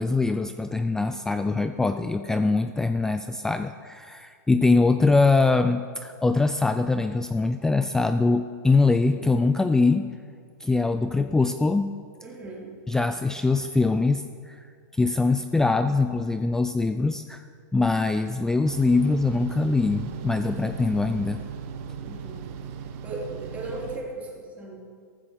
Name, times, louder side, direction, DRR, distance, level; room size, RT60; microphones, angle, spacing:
voice 1, 0.0-10.1 10.6-12.0 12.9-17.4 17.7-21.4, left 3 dB, 5° left, 9 dB, 0.3 m, -23 dB
voice 2, 12.2-12.7 22.0-22.5 23.0-24.8, right 2 dB, 15° right, -4 dB, 3.6 m, -37 dB
sound 1, 18.6-24.0, right 7 dB, 45° right, 1.3 m, -37 dB
14.5 x 13.5 x 5.8 m, 2.1 s
supercardioid pair, 150°, 10 cm